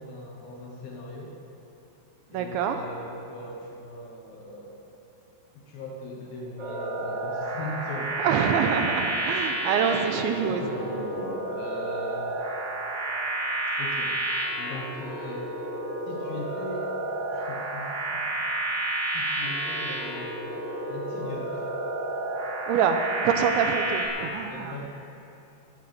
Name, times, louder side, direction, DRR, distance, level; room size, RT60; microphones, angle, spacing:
voice 1, 0.0-1.4 2.3-4.8 5.5-8.3 10.5-12.3 13.8-14.1 14.6-15.5 16.1-16.9 17.3-18.2 19.1-21.6 24.5-24.8, left 1 dB, 65° left, -2 dB, 2.6 m, -39 dB
voice 2, 2.3-2.9 7.0-7.1 8.2-10.7 22.7-24.8, right 7 dB, 85° right, 6 dB, 2.9 m, -26 dB
sound 1, 6.6-24.1, right 1 dB, 40° right, 1.7 m, -31 dB
14.0 x 9.3 x 7.8 m, 2.9 s
omnidirectional pair, 5.6 m